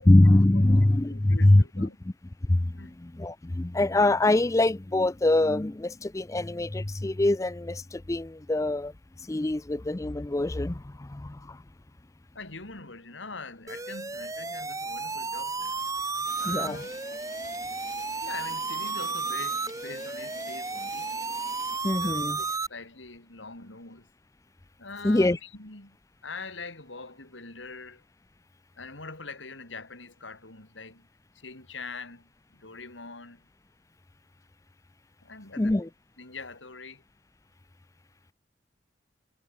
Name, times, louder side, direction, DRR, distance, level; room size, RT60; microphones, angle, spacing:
voice 1, 0.0-1.9 2.5-8.9 9.2-11.6 16.5-16.8 21.8-22.4 25.0-25.4 35.6-35.9, left 1 dB, 15° left, 0.4 m, -23 dB
voice 2, 0.5-2.0 2.6-3.0 12.3-15.8 16.4-16.9 18.2-21.1 21.7-24.1 24.8-26.0 26.2-28.0 28.8-31.1 31.3-33.4 35.2-35.9 36.2-37.0, left 3 dB, 85° left, 5.1 m, -43 dB
sound 1, 13.7-22.7, right 4 dB, 15° right, 1.3 m, -33 dB
sound 2, 16.3-21.8, left 4 dB, 45° left, 6.0 m, -48 dB
head